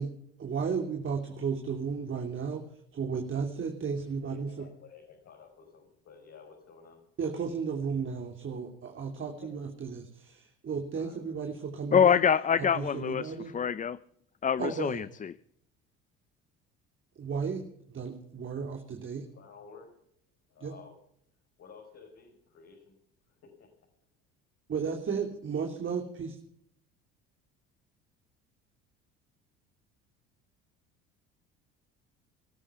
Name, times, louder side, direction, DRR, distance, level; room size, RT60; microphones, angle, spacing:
voice 1, 0.4-2.6 2.9-4.6 7.2-12.2 12.6-13.5 14.6-15.0 17.2-19.2 20.6-20.7 24.7-26.4, right 6 dB, 40° right, 2.8 m, -34 dB
voice 2, 4.2-7.0 9.3-9.6 10.9-11.2 19.3-19.9 20.5-20.9 21.6-23.0 23.3-23.9, left 5 dB, 50° left, 5.5 m, -53 dB
voice 3, 11.9-14.0 14.4-15.3, left 7 dB, 25° left, 0.6 m, -25 dB
20.0 x 13.0 x 5.6 m
hypercardioid pair, 70°, 30 cm